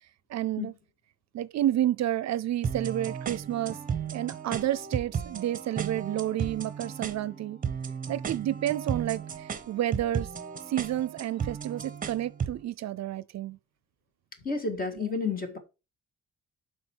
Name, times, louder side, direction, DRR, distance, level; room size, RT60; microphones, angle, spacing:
voice 1, 0.3-0.7 1.3-3.8 4.1-7.6 8.1-10.3 10.7-13.6 15.0-15.2, right 12 dB, 60° right, 0.5 m, -30 dB
sound 1, 2.6-12.6, right 7 dB, 25° right, 0.9 m, -35 dB
voice 2, 14.4-15.6, left 4 dB, 30° left, 1.7 m, -30 dB
7.8 x 5.1 x 4.5 m
cardioid pair, 150°, 31 cm